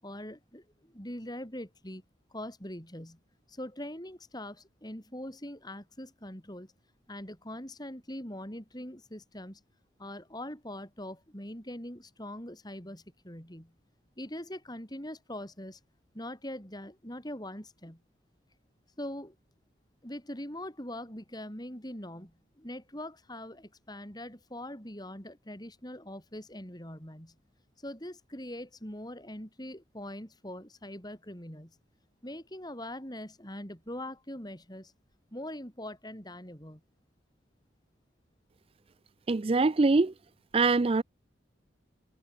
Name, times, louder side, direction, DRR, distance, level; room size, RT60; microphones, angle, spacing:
voice 1, 0.0-2.0 2.3-3.2 3.5-6.7 7.1-9.6 10.0-13.7 14.2-15.8 16.1-18.0 19.0-19.4 20.0-27.3 27.8-31.8 32.2-34.9 35.3-36.8, left 1 dB, 20° left, 7.6 m, -42 dB
voice 2, 39.3-40.1 40.5-41.0, right 3 dB, 30° right, 0.4 m, -23 dB
head